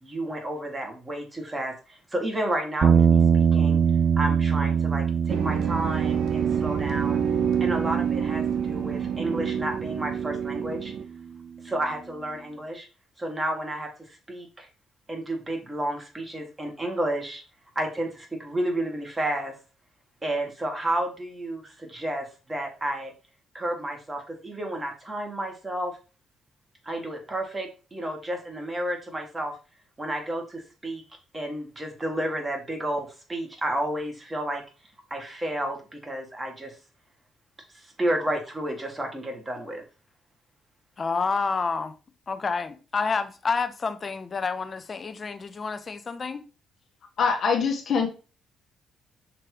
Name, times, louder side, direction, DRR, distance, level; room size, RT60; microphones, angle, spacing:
voice 1, 0.0-3.8 4.2-7.2 7.6-10.9 11.6-12.9 13.2-14.7 15.1-17.4 17.8-19.6 20.2-23.1 23.5-26.0 26.8-29.6 30.0-31.0 31.3-34.6 35.1-36.8 37.7-39.8, right 1 dB, 20° right, 2.0 m, -31 dB
sound 1, 2.8-11.1, right 7 dB, 50° right, 0.4 m, -24 dB
sound 2, 5.3-11.0, right 8 dB, 75° right, 0.7 m, -28 dB
voice 2, 41.0-41.9 42.3-46.4, left 4 dB, 35° left, 0.7 m, -29 dB
voice 3, 47.2-48.1, left 5 dB, 60° left, 1.3 m, -23 dB
6.0 x 3.2 x 5.0 m
cardioid pair, 90°, 0 cm